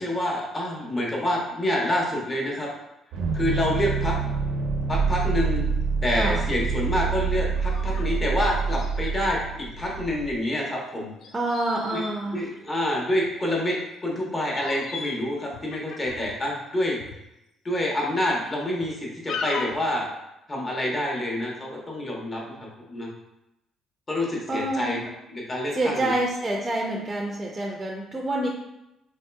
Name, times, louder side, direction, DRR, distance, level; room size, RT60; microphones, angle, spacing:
voice 1, 0.0-2.7 3.3-4.2 4.9-5.7 6.0-11.1 11.9-12.0 12.3-17.0 17.6-20.1 20.5-23.1 24.1-25.0 25.3-26.1, left 1 dB, 25° left, -2 dB, 0.9 m, -27 dB
sound 1, 3.1-10.3, right 5 dB, 85° right, 0.5 m, -26 dB
sound 2, 4.7-4.8 5.4-5.6 6.2-6.3 7.1-8.1 8.4-8.5 8.7-9.1 11.2-13.3 14.0-14.2 14.4-15.2 15.5-16.4 17.0-17.2 17.7-17.8 18.4-18.9 19.3-19.9, left 4 dB, 65° left, 0.3 m, -37 dB
voice 2, 6.1-6.5 11.3-12.5 24.5-25.0 25.7-28.5, right 1 dB, 20° right, -1 dB, 0.4 m, -27 dB
3.8 x 2.7 x 2.2 m, 0.88 s
cardioid pair, 105°, 0 cm